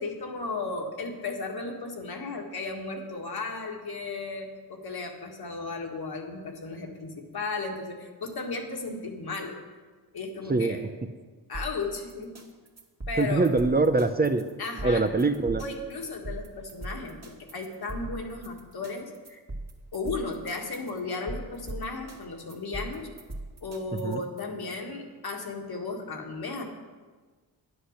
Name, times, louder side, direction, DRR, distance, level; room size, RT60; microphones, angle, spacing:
voice 1, 0.0-9.6 10.1-10.9 11.5-12.4 13.1-13.5 14.6-15.0 15.6-19.4 19.9-23.1 23.6-26.6, left 3 dB, 65° left, 2 dB, 1.9 m, -35 dB
sound 1, 11.5-24.4, right 2 dB, 40° right, 2.1 m, -40 dB
voice 2, 13.2-14.4 14.8-15.6 24.0-24.2, right 3 dB, 25° right, 8 dB, 0.7 m, -23 dB
10.0 x 8.0 x 6.6 m, 1.4 s
cardioid pair, 55°, 41 cm